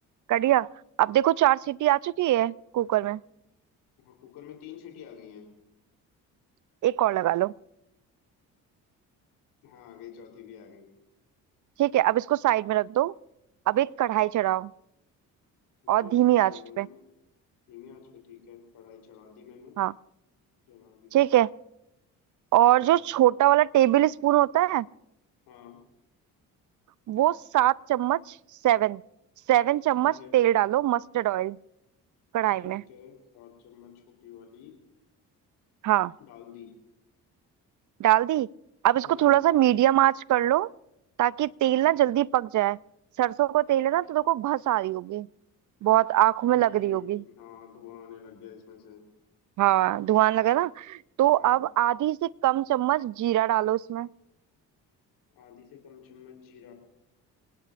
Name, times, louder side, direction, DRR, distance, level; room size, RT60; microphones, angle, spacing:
voice 1, 0.3-0.7 1.0-3.2 6.8-7.5 11.8-13.1 13.7-14.7 15.9-16.9 19.8-19.9 21.1-21.5 22.5-24.9 27.1-28.3 28.6-29.0 29.5-31.6 32.3-32.8 35.8-36.1 38.0-38.5 38.8-40.7 41.2-42.8 43.2-45.3 45.8-47.2 49.6-54.1, right 14 dB, 50° right, 0.5 m, -23 dB
voice 2, 4.0-5.5 9.6-10.9 15.8-17.0 17.7-19.7 20.7-21.2 22.7-23.0 25.5-25.8 30.0-30.3 32.5-34.8 36.2-36.7 39.0-39.3 46.5-49.0 51.3-51.6 55.3-56.7, left 9 dB, 80° left, 3.7 m, -48 dB
29.0 x 18.5 x 2.5 m
supercardioid pair, 55°, 39 cm